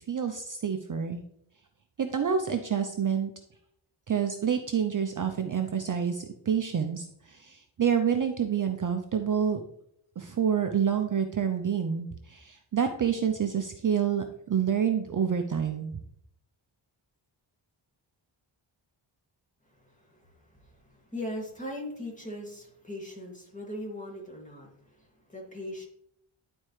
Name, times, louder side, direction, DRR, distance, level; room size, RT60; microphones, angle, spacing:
voice 1, 0.1-1.2 2.0-3.3 4.1-9.6 10.2-15.9, right 7 dB, 40° right, 5 dB, 0.6 m, -28 dB
voice 2, 19.7-25.8, left 1 dB, 15° left, -1 dB, 2.1 m, -40 dB
11.0 x 4.3 x 3.2 m, 0.72 s
wide cardioid pair, 100°, 50 cm